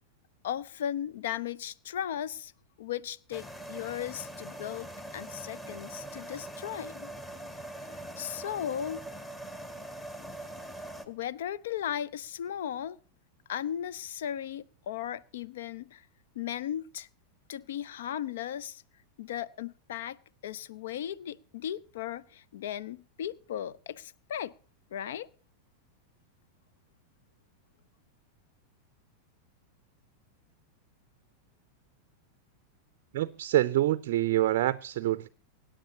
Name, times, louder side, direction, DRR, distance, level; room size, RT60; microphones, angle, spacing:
voice 1, 0.4-2.5 2.8-7.1 7.9-9.0 11.1-13.0 13.5-16.0 16.4-17.1 17.5-18.8 19.2-20.2 20.4-24.5 24.9-25.3, left 10 dB, 60° left, 0.6 m, -36 dB
sound 1, 3.3-11.0, right 1 dB, 10° left, 1.6 m, -42 dB
voice 2, 33.1-35.3, right 14 dB, 50° right, 0.5 m, -26 dB
24.5 x 9.9 x 2.9 m
figure-of-eight pair, 90°, 0 cm